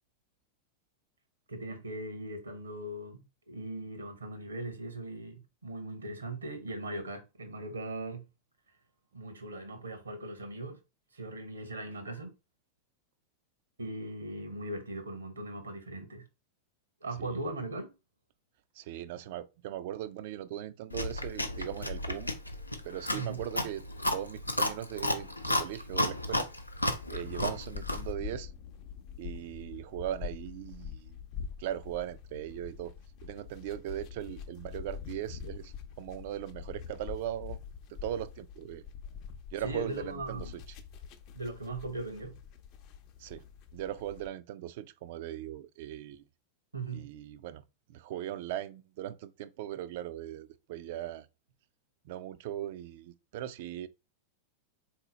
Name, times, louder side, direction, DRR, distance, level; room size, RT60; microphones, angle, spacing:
voice 1, 1.5-8.3 9.1-10.8 11.1-12.3 13.8-16.2 17.0-17.9 23.1-23.4 27.4-27.5 39.6-40.5 41.3-42.4 46.7-47.1, right 2 dB, 75° right, 0.9 m, -39 dB
voice 2, 18.8-22.3 22.8-23.8 24.1-26.5 27.1-28.5 29.2-31.2 31.6-32.9 33.2-37.6 37.9-38.8 39.5-40.6 43.2-43.4 43.7-46.2 46.9-47.6 47.9-51.3 52.0-53.9, right 12 dB, 50° right, 0.4 m, -39 dB
Chewing mastication, 20.9-28.1, left 1 dB, 85° left, 0.6 m, -33 dB
sound 1, 26.9-44.3, left 7 dB, 40° left, 0.6 m, -45 dB
4.0 x 2.9 x 3.9 m
figure-of-eight pair, 90°, 0 cm